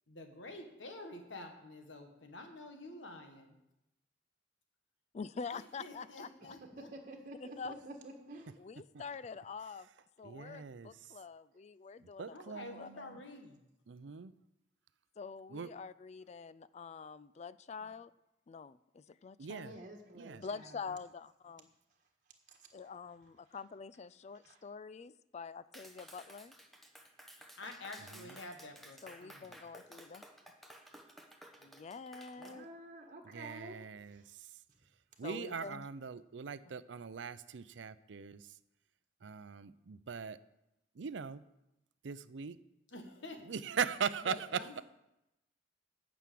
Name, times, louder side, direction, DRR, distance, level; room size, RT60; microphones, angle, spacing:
voice 1, 0.1-3.6 5.5-6.9 12.3-13.6 27.6-29.6 42.9-43.4 44.2-44.8, left 2 dB, 85° left, 5 dB, 1.6 m, -49 dB
voice 2, 5.1-6.5 7.4-7.8 8.6-9.9 10.2-13.1 15.2-18.1 18.5-19.8 20.4-21.7 22.7-26.5 29.0-30.3 31.6-32.7 35.2-35.9 36.6-36.8, left 5 dB, 35° left, 17 dB, 0.3 m, -46 dB
voice 3, 6.8-8.5 19.5-21.0 22.5-22.7 24.4-24.6 32.4-33.8 34.1-34.3, right 1 dB, 45° right, 3 dB, 1.5 m, -50 dB
voice 4, 10.2-10.9 12.2-13.2 13.9-14.3 15.5-15.7 19.4-19.7 20.1-20.4 28.1-28.3 33.3-34.2 35.2-38.4 39.2-40.4 41.0-41.4 42.0-42.6 43.5-44.4, right 6 dB, 75° right, 15 dB, 0.5 m, -40 dB
Clapping, 25.7-32.6, equal, ahead, 1.0 m, -55 dB
9.4 x 6.1 x 8.4 m, 0.89 s
head